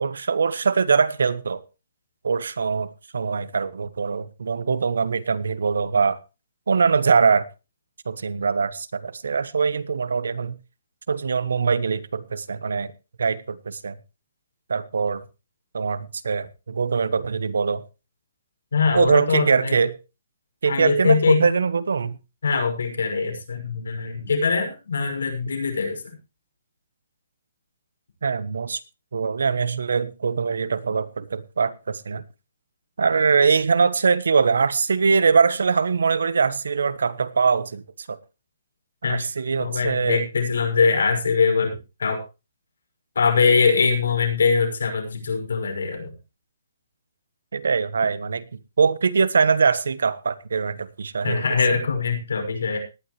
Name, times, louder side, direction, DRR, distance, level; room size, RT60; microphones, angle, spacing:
voice 1, 0.0-1.6 2.2-6.2 6.7-7.5 8.0-10.6 11.1-12.9 13.2-14.0 14.7-15.2 15.7-17.8 18.9-20.0 20.6-22.2 28.2-28.8 29.1-32.2 33.0-38.2 39.0-40.3 47.5-48.4 48.8-51.4, right 5 dB, 90° right, 1.3 m, -22 dB
voice 2, 18.7-19.7 20.7-21.5 22.4-26.0 39.0-39.3 39.6-42.2 43.1-46.1 51.2-52.8, left 5 dB, 85° left, 6.2 m, -22 dB
18.5 x 11.0 x 3.2 m
hypercardioid pair, 175°, 0 cm